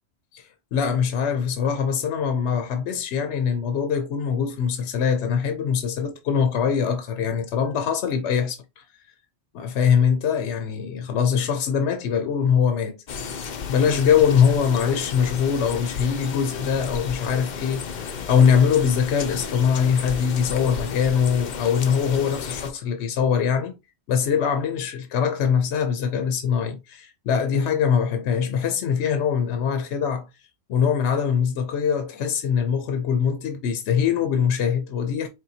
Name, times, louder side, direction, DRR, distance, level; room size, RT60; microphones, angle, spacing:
voice 1, 0.3-8.8 9.5-13.0 13.2-23.8 24.1-30.3 30.7-35.3, left 7 dB, 75° left, 0.9 m, -22 dB
sound 1, 13.1-22.7, left 6 dB, 55° left, 0.6 m, -33 dB
4.5 x 3.2 x 2.7 m
omnidirectional pair, 1.2 m